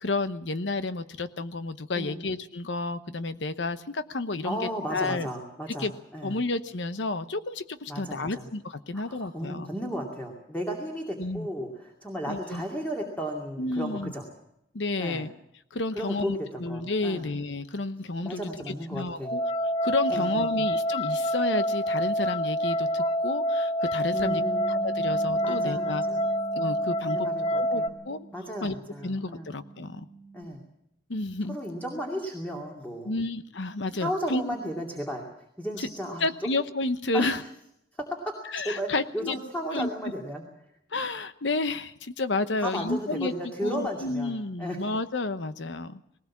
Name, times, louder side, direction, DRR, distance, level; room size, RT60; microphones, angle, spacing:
voice 1, 0.0-4.6 4.9-5.3 5.8-5.9 6.2-9.7 11.2-11.5 12.3-12.6 13.6-14.1 14.7-15.3 15.7-18.4 18.7-19.4 19.8-24.4 24.7-26.0 26.6-27.3 27.5-28.3 28.6-28.7 29.0-30.0 31.1-31.6 33.0-34.6 35.8-35.9 36.2-37.4 38.5-39.4 39.7-39.9 40.9-46.0, left 2 dB, 70° left, 12 dB, 0.9 m, -31 dB
voice 2, 1.9-2.3 4.4-6.4 7.9-8.5 8.9-14.2 15.0-15.3 15.9-17.3 18.2-19.3 20.1-20.6 24.1-24.6 25.4-26.2 27.0-28.0 28.3-29.5 30.3-30.6 31.5-33.2 34.0-35.2 35.6-36.5 37.1-37.3 38.0-38.1 38.6-40.4 42.6-44.8, equal, 10° left, 0 dB, 2.5 m, -34 dB
Crystal Glass Rim, 19.2-27.9, equal, 35° left, 0.8 m, -27 dB
Bass guitar, 24.2-30.4, right 4 dB, 60° right, 1.6 m, -43 dB
19.5 x 18.5 x 7.3 m, 0.79 s
head